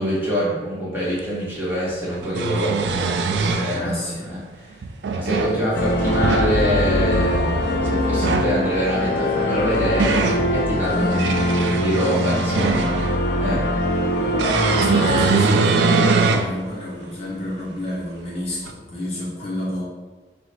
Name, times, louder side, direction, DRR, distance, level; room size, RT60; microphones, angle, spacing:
voice 1, 0.0-3.1 3.5-4.8 5.1-10.2 10.5-13.0 13.4-13.7, equal, 10° right, -8 dB, 1.1 m, -25 dB
sound 1, 1.2-1.3 2.1-3.8 4.8-5.6 6.0-6.5 8.1-8.6 9.5-10.4 11.0-13.2 14.4-16.5 17.0-17.1 18.7-18.8, right 4 dB, 80° right, 0.3 m, -21 dB
voice 2, 3.7-4.3 10.8-11.5 14.2-19.8, left 1 dB, 35° left, -6 dB, 0.6 m, -29 dB
sound 2, 5.7-15.3, left 1 dB, 75° left, 0.4 m, -22 dB
4.8 x 2.1 x 3.9 m, 1.3 s
head